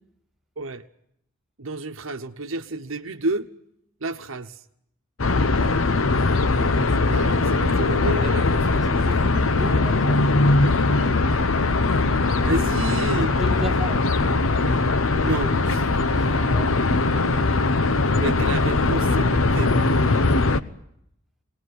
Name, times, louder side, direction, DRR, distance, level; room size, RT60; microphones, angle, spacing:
voice 1, 1.6-3.5 4.0-4.6 6.6-9.2 12.4-13.4 15.1-15.9 18.2-19.9, right 2 dB, 75° right, 1.0 m, -30 dB
sound 1, 5.2-20.6, left 3 dB, 75° left, 0.9 m, -20 dB
voice 2, 5.3-5.6 8.9-10.3 13.4-14.0 16.0-16.7 17.1-17.5, equal, ahead, 1.3 m, -35 dB
22.5 x 19.0 x 9.6 m
head